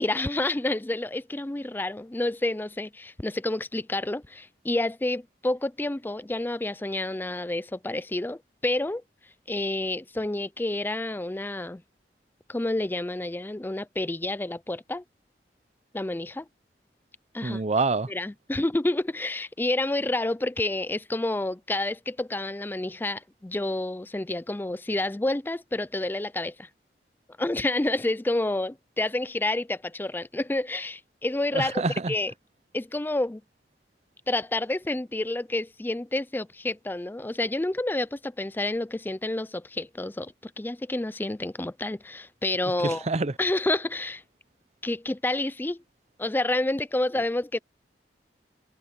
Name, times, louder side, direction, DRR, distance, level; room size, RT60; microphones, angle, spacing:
voice 1, 0.0-9.0 9.5-11.8 12.5-15.0 15.9-16.5 17.3-17.6 18.1-26.7 27.4-32.3 32.7-33.4 34.3-43.1 43.4-44.2 44.8-45.8 46.2-47.6, left 2 dB, 10° left, 0.4 m, -29 dB
voice 2, 17.4-18.1 31.5-32.1 42.8-43.3, right 3 dB, 40° right, 0.7 m, -26 dB
head